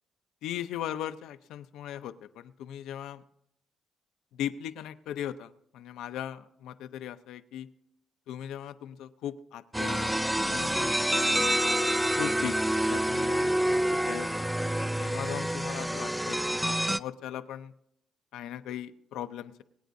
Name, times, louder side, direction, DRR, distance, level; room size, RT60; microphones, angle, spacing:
voice 1, 0.4-3.2 4.3-7.7 8.3-10.2 10.5-11.3 12.2-12.6 12.9-14.5 15.0-17.7 18.3-19.6, left 11 dB, 85° left, 10 dB, 0.6 m, -38 dB
sound 1, 9.7-17.0, right 1 dB, 5° right, 0.3 m, -27 dB
23.0 x 9.2 x 2.6 m, 0.77 s
cardioid pair, 90°, 0 cm